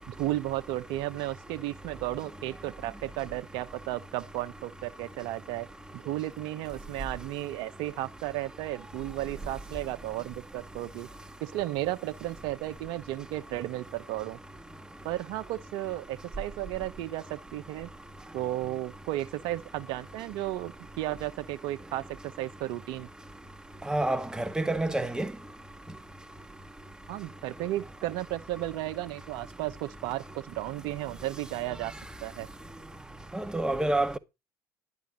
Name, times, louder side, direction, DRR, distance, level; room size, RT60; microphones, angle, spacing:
voice 1, 0.1-5.7 5.9-11.1 11.4-14.4 15.0-17.9 18.3-23.1 27.1-31.9 32.2-32.5, right 15 dB, 65° right, 1.1 m, -34 dB
voice 2, 23.9-25.3 33.3-34.2, right 2 dB, 10° right, 1.7 m, -28 dB
12.0 x 11.0 x 3.8 m
hypercardioid pair, 65°, 9 cm